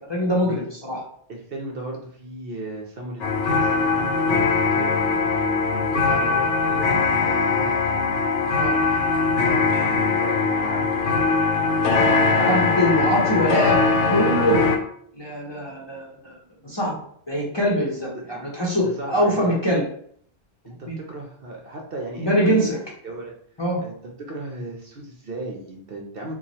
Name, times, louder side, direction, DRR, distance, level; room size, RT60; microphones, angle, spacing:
voice 1, 0.1-1.0 6.1-6.2 8.5-9.1 12.4-13.8 14.1-14.6 15.1-16.4 16.6-16.9 17.3-19.8 20.9-21.0 22.2-22.8 23.6-23.8, equal, 25° left, -5 dB, 0.6 m, -23 dB
voice 2, 1.3-4.4 4.7-5.0 5.7-7.8 9.8-10.9 12.0-13.1 17.9-18.2 18.8-19.8 20.6-22.7 23.0-23.3 23.8-26.3, right 2 dB, 55° right, 0 dB, 0.8 m, -35 dB
sound 1, 3.2-14.8, left 4 dB, 75° left, 0.9 m, -21 dB
3.0 x 2.3 x 4.0 m, 0.62 s
omnidirectional pair, 1.2 m